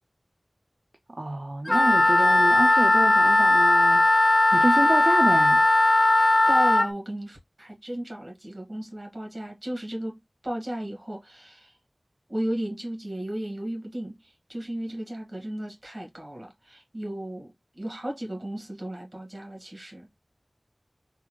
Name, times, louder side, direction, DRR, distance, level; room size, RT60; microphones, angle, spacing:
voice 1, 1.1-4.1 4.5-5.6, right 2 dB, 60° right, 0.5 m, -28 dB
Wind instrument woodwind instrument, 1.7-6.9, left 2 dB, 45° left, 0.3 m, -18 dB
voice 2, 6.5-10.2 10.4-11.8 12.3-20.1, right 1 dB, 45° right, 1.7 m, -34 dB
3.5 x 2.5 x 3.0 m
wide cardioid pair, 45°, 0 cm